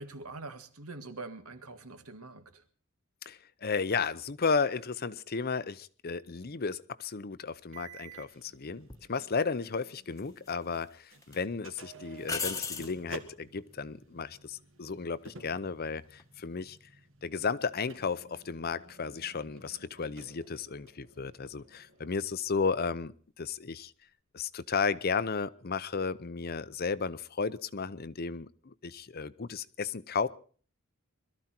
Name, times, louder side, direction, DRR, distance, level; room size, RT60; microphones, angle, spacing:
voice 1, 0.0-2.6, right 3 dB, 80° right, 8 dB, 1.9 m, -44 dB
voice 2, 3.3-16.8 17.2-23.9 24.3-30.3, left 5 dB, 45° left, 15 dB, 0.7 m, -34 dB
sound 1, 7.7-10.8 11.1-22.3, right 3 dB, 60° right, 1.9 m, -53 dB
sound 2, 8.9-9.1 10.2-10.8 11.2-11.4 12.2-13.0 16.1-16.4, left 5 dB, 15° left, 1.1 m, -36 dB
22.0 x 13.5 x 4.4 m, 0.43 s
head